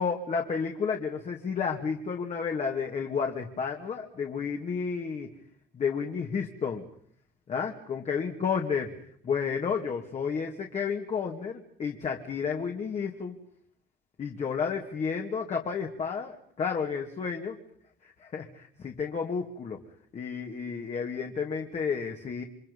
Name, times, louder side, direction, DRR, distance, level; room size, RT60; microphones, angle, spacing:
voice 1, 0.0-5.3 5.7-6.8 7.5-8.9 9.2-13.4 14.2-17.6 18.0-19.8 20.1-22.4, left 6 dB, 40° left, 2 dB, 2.7 m, -31 dB
29.5 x 24.0 x 5.6 m, 0.65 s
cardioid pair, 110°, 17 cm